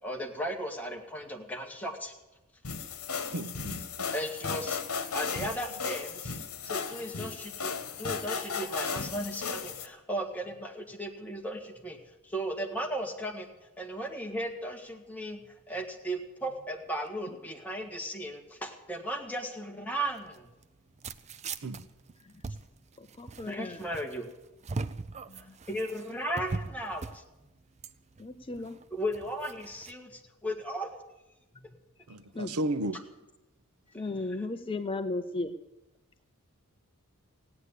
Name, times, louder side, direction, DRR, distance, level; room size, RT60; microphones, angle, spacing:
voice 1, 0.0-2.1 4.1-4.8 5.1-6.4 6.6-12.0 12.2-15.4 15.7-20.5 23.5-24.3 25.7-27.2 28.9-30.9, right 1 dB, 5° left, 1.8 m, -36 dB
sound 1, 2.6-9.9, left 5 dB, 70° left, 1.3 m, -35 dB
voice 2, 3.3-4.1 21.6-21.8 32.1-33.0, right 1 dB, 90° right, 0.8 m, -34 dB
sound 2, 20.1-29.9, right 3 dB, 30° right, 0.5 m, -41 dB
voice 3, 23.0-23.8 28.2-28.8 32.3-32.6 33.9-35.6, left 2 dB, 25° left, 0.6 m, -35 dB
16.0 x 9.6 x 8.3 m
head